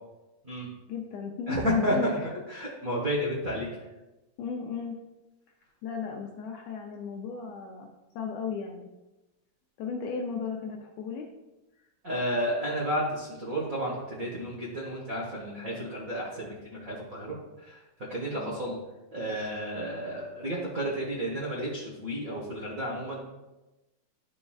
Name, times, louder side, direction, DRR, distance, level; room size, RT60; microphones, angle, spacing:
voice 1, 0.9-2.3 3.8-3.9 4.4-5.0 5.8-8.9 9.8-11.3 18.3-18.7, left 5 dB, 80° left, 2 dB, 1.6 m, -35 dB
voice 2, 1.5-1.9 2.5-3.7 12.0-17.4 17.7-17.8 18.1-18.8 19.1-23.2, equal, 70° right, -5 dB, 0.8 m, -32 dB
11.5 x 5.2 x 2.3 m, 1.0 s
omnidirectional pair, 3.7 m